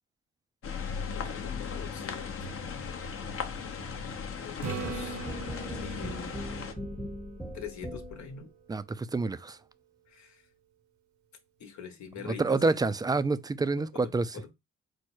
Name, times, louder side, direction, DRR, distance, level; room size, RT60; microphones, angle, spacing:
sound 1, 0.6-6.7, left 5 dB, 50° left, 0.8 m, -37 dB
voice 1, 1.1-2.6 4.4-5.2 5.7-6.4 7.5-8.5 10.1-10.4 11.6-12.8 13.8-14.5, left 7 dB, 70° left, 1.1 m, -44 dB
Acoustic guitar / Strum, 4.6-8.4 13.2-13.3, right 6 dB, 70° right, 0.8 m, -42 dB
sound 2, 4.8-8.4, equal, 5° left, 0.8 m, -39 dB
voice 2, 8.7-9.6 12.2-14.3, right 3 dB, 15° right, 0.3 m, -28 dB
4.6 x 2.1 x 4.4 m
cardioid pair, 85°, 30 cm